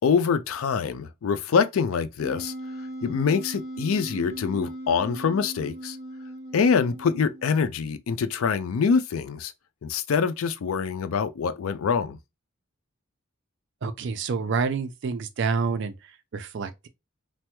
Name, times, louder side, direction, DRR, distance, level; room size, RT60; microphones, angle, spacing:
voice 1, 0.0-2.5 3.0-6.0 6.5-9.5 9.8-12.2, left 6 dB, 80° left, 0.4 m, -25 dB
Wind instrument woodwind instrument, 2.2-7.6, right 1 dB, 15° right, 0.7 m, -38 dB
voice 2, 13.8-15.9 16.3-16.9, right 5 dB, 55° right, 0.4 m, -28 dB
3.3 x 2.1 x 2.9 m
head